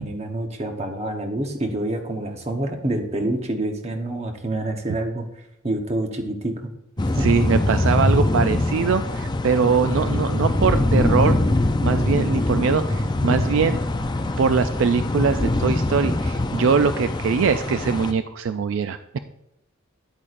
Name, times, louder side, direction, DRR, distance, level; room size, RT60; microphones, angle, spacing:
voice 1, 0.0-5.3 5.6-6.6 7.2-7.3, right 1 dB, 30° right, 4 dB, 1.0 m, -27 dB
sound 1, 7.0-18.1, left 1 dB, 20° left, 0.4 m, -23 dB
voice 2, 7.2-11.4 11.8-13.8 14.4-19.2, right 5 dB, 65° right, 10 dB, 0.3 m, -22 dB
9.8 x 8.5 x 2.5 m, 0.85 s
head